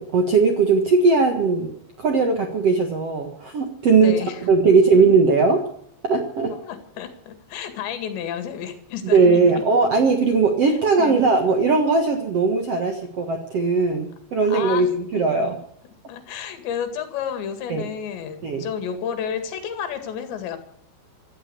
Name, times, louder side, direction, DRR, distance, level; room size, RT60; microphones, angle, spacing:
voice 1, 0.0-1.7 2.0-4.1 4.4-5.6 6.0-6.5 9.0-15.5 17.7-17.8 18.4-18.6, right 4 dB, 85° right, 4 dB, 1.3 m, -19 dB
voice 2, 3.9-4.4 4.7-4.8 6.5-9.4 10.8-11.2 11.5-11.6 14.5-15.4 16.1-20.6, left 8 dB, 65° left, 8 dB, 4.2 m, -31 dB
15.5 x 12.5 x 6.9 m, 0.69 s
omnidirectional pair, 5.6 m